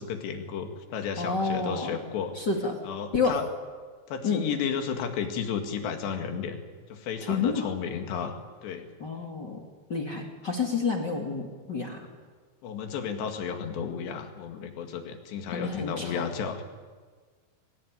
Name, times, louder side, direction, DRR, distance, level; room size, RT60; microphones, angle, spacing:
voice 1, 0.0-2.3 2.8-3.4 4.1-6.6 6.9-8.9 12.6-16.6, left 7 dB, 70° left, 6 dB, 4.2 m, -33 dB
voice 2, 1.2-2.0 2.3-2.8 3.1-3.4 4.2-4.4 7.3-7.7 9.0-9.6 9.9-12.1 15.5-16.3, left 4 dB, 35° left, 2 dB, 1.8 m, -29 dB
24.5 x 19.0 x 9.8 m, 1.5 s
omnidirectional pair, 5.2 m